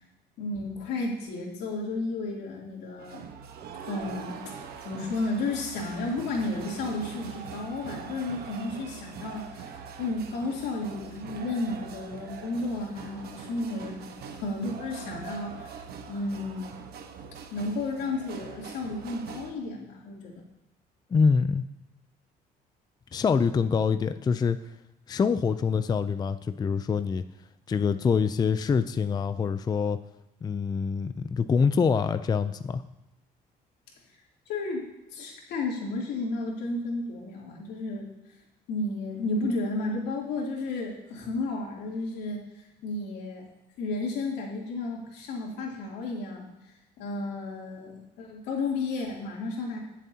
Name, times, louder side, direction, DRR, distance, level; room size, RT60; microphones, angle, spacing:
voice 1, 0.4-3.2 3.8-4.5 4.8-9.7 10.0-15.8 16.1-16.6 17.5-20.4 34.5-38.1 38.7-42.4 42.8-43.4 43.8-46.5 47.0-49.8, left 2 dB, 85° left, -2 dB, 2.9 m, -32 dB
sound 1, 3.0-19.5, right 6 dB, 70° right, 1.2 m, -43 dB
voice 2, 21.1-21.6 23.1-24.6 25.1-27.2 27.7-30.0 30.4-32.8, left 5 dB, 25° left, 11 dB, 0.4 m, -25 dB
20.0 x 7.2 x 2.8 m, 0.95 s
cardioid pair, 110°, 17 cm